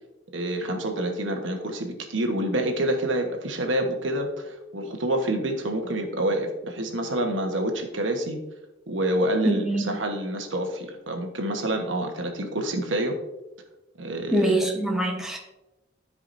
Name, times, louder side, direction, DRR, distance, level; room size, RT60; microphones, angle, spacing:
voice 1, 0.3-8.4 8.9-13.2 14.0-14.6, right 1 dB, 80° right, 4 dB, 1.2 m, -27 dB
voice 2, 9.4-9.9 14.3-15.4, right 1 dB, ahead, 0 dB, 1.0 m, -24 dB
13.0 x 4.9 x 2.6 m, 0.99 s
head